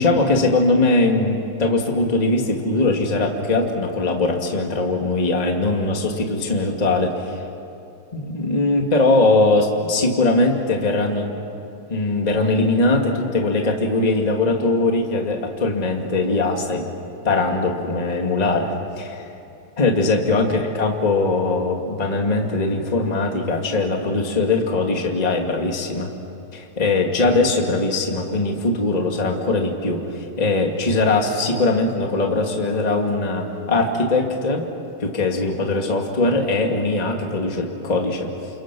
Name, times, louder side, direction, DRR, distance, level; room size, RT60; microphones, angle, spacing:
voice 1, 0.0-7.4 8.1-11.3 11.9-16.9 17.2-19.2 19.8-26.1 26.5-34.7 35.0-38.3, left 2 dB, 15° left, 2 dB, 1.8 m, -21 dB
29.0 x 28.5 x 6.2 m, 2.7 s
omnidirectional pair, 3.5 m